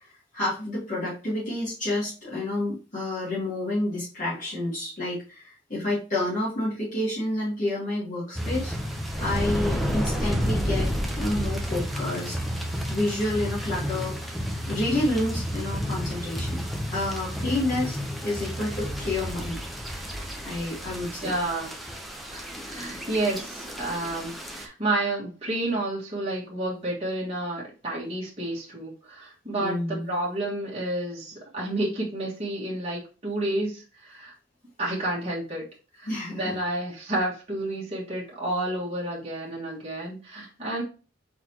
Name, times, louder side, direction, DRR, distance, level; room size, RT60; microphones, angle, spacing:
voice 1, 0.0-10.9 11.2-12.4 12.9-14.1 14.7-16.6 16.9-18.0 18.2-19.6 20.4-21.3 29.6-30.1 36.1-36.6, left 1 dB, 45° left, -9 dB, 2.1 m, -29 dB
sound 1, 8.3-24.7, equal, ahead, 0.6 m, -31 dB
voice 2, 21.2-21.7 22.3-34.3 34.8-35.6 35.9-40.8, right 1 dB, 35° right, -5 dB, 1.5 m, -30 dB
4.6 x 3.9 x 2.8 m, 0.34 s
head